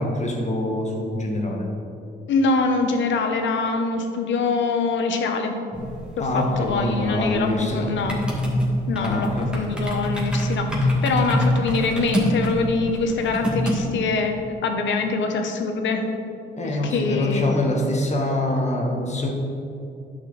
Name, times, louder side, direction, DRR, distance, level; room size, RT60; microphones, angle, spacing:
voice 1, 0.0-1.7 6.2-7.9 9.0-9.5 16.5-19.3, left 1 dB, 35° left, 0 dB, 1.7 m, -24 dB
voice 2, 2.3-5.6 6.3-8.2 8.9-14.4 14.6-16.0 16.6-17.5, left 4 dB, 70° left, 5 dB, 1.1 m, -24 dB
sound 1, 5.7-13.8, equal, 5° right, 2.1 m, -26 dB
11.0 x 6.3 x 4.1 m, 2.7 s
cardioid pair, 90°, 20 cm